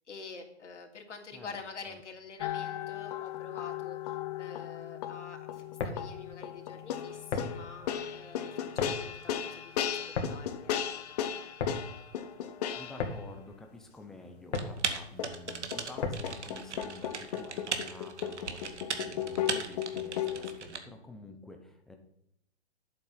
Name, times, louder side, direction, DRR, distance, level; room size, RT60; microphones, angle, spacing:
voice 1, 0.1-10.0 10.3-11.0, left 4 dB, 90° left, 2 dB, 3.2 m, -47 dB
sound 1, 2.4-13.1 15.2-20.6, left 10 dB, 35° left, 1.2 m, -36 dB
sound 2, 5.6-16.5, left 4 dB, 65° left, 2.4 m, -39 dB
voice 2, 12.3-22.0, left 2 dB, ahead, 4 dB, 0.5 m, -49 dB
Typing, 14.5-20.8, right 5 dB, 75° right, 2.1 m, -37 dB
11.0 x 8.6 x 5.7 m, 0.76 s
hypercardioid pair, 155°, 35 cm